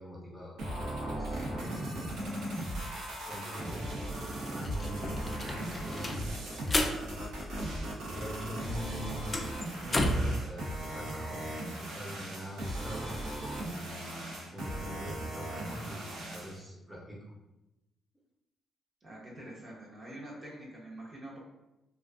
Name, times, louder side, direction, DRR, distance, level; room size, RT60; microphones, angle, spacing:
voice 1, 0.0-2.6 3.3-3.8 4.4-5.5 5.8-6.4 8.1-9.3 9.8-11.5 11.8-13.1 13.6-17.3, equal, ahead, -6 dB, 0.7 m, -43 dB
sound 1, 0.6-16.6, right 1 dB, 85° right, 0.6 m, -38 dB
sound 2, 3.9-4.0 4.3-8.2 8.5-10.4, left 1 dB, 25° left, 0.3 m, -33 dB
voice 2, 19.0-21.4, right 1 dB, 45° right, -4 dB, 0.8 m, -46 dB
2.4 x 2.3 x 2.3 m, 0.95 s
cardioid pair, 90°, 0 cm